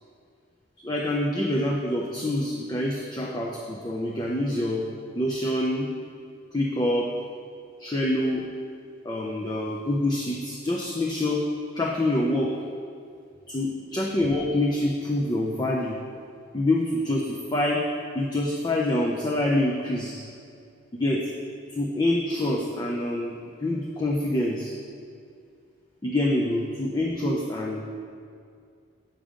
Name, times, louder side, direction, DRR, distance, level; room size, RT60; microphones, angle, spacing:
voice 1, 0.8-4.9 5.2-5.9 6.5-7.1 7.8-8.4 9.0-11.4 11.7-12.5 13.5-16.0 16.5-17.8 18.1-20.2 20.9-21.2 21.7-23.4 23.6-24.7 26.0-27.8, left 1 dB, 20° left, -2 dB, 0.5 m, -26 dB
7.4 x 5.3 x 5.0 m, 2.3 s
head